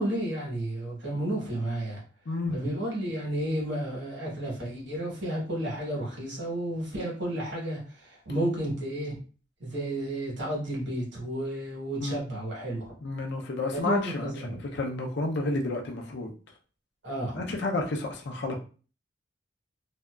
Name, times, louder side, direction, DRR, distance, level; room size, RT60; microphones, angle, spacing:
voice 1, 0.0-2.0 2.5-9.2 9.6-13.0 13.7-14.6 17.0-17.4, right 1 dB, 65° right, 1.2 m, -32 dB
voice 2, 2.3-2.6 12.0-12.2 13.0-16.3 17.3-18.6, left 2 dB, 65° left, 0.5 m, -31 dB
2.6 x 2.3 x 2.3 m
head